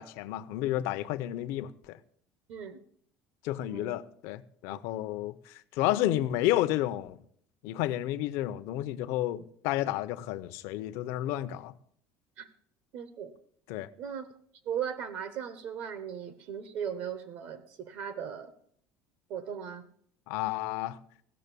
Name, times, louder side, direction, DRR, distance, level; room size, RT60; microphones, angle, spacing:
voice 1, 0.0-2.0 3.4-7.2 7.6-11.7 13.7-13.9 20.3-21.0, left 14 dB, 65° left, 0.7 m, -31 dB
voice 2, 3.6-4.0 4.7-4.8 12.4-12.5 12.9-13.3 14.0-14.3 14.7-18.5 19.3-19.9, right 8 dB, 50° right, 1.0 m, -37 dB
16.5 x 6.5 x 6.8 m
cardioid pair, 180°, 5 cm